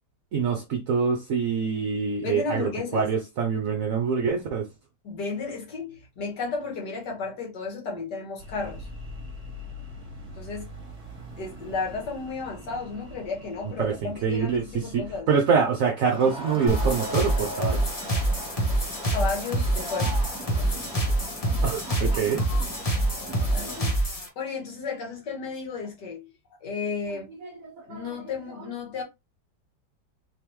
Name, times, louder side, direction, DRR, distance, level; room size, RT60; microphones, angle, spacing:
voice 1, 0.3-4.7 13.8-17.9 21.6-22.4 27.4-28.2, right 6 dB, 65° right, 0.9 m, -25 dB
voice 2, 2.2-3.1 5.0-8.9 10.4-10.7 11.4-15.3 19.1-20.2 23.5-24.0 24.4-26.3 26.6-27.3 27.9-29.0, left 4 dB, 70° left, 2.0 m, -33 dB
sound 1, 8.4-15.2, left 1 dB, 25° right, 1.3 m, -43 dB
Crowd, 16.1-24.0, equal, 5° right, 0.8 m, -38 dB
sound 2, 16.7-24.3, right 1 dB, 25° left, 0.9 m, -26 dB
3.7 x 3.4 x 3.0 m
omnidirectional pair, 1.9 m